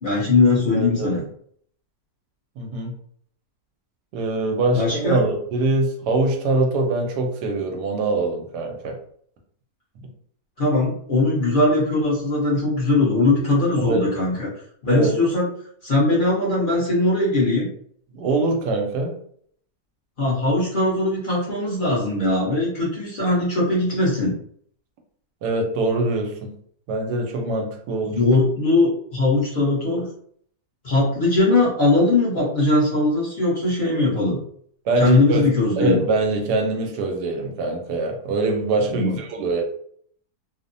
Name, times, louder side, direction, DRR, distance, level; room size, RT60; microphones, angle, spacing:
voice 1, 0.0-1.2 4.7-5.2 10.6-14.5 14.8-15.5 15.8-17.7 20.2-24.3 28.0-30.1 30.8-34.4 35.0-36.0 38.9-39.2, left 2 dB, 40° left, -6 dB, 0.8 m, -20 dB
voice 2, 0.7-1.2 2.6-2.9 4.1-9.0 10.0-10.1 13.8-14.1 14.9-15.2 18.1-19.2 25.4-26.5 26.9-28.2 34.9-39.6, right 2 dB, 90° right, 3 dB, 1.2 m, -23 dB
2.9 x 2.0 x 2.5 m, 0.62 s
omnidirectional pair, 1.7 m